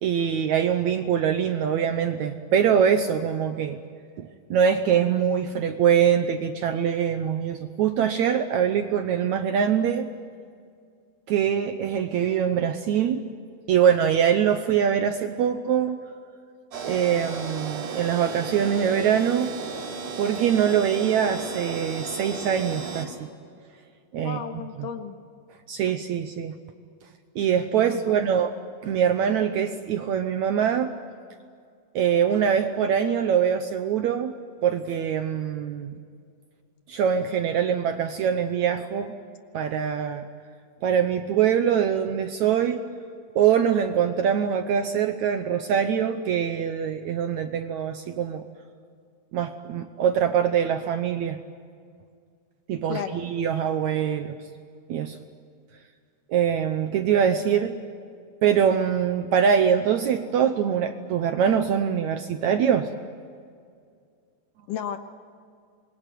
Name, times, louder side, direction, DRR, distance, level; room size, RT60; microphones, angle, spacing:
voice 1, 0.0-3.8 4.2-10.1 11.3-13.2 13.7-16.0 16.8-19.5 20.2-23.3 24.1-24.4 24.8-24.9 25.7-26.6 27.4-28.5 28.8-30.9 32.0-34.3 34.6-35.9 36.9-39.1 39.5-40.3 40.8-42.8 43.4-48.4 49.3-51.4 52.7-54.4 54.9-55.2 56.3-57.8 58.4-62.9, right 8 dB, 70° right, 8 dB, 1.8 m, -23 dB
sound 1, 16.7-23.1, right 4 dB, 90° right, 5.5 m, -34 dB
voice 2, 24.2-25.2 27.8-28.2 52.9-53.2 64.7-65.0, left 8 dB, 70° left, 7 dB, 2.7 m, -33 dB
26.5 x 22.5 x 9.3 m, 2.2 s
omnidirectional pair, 4.2 m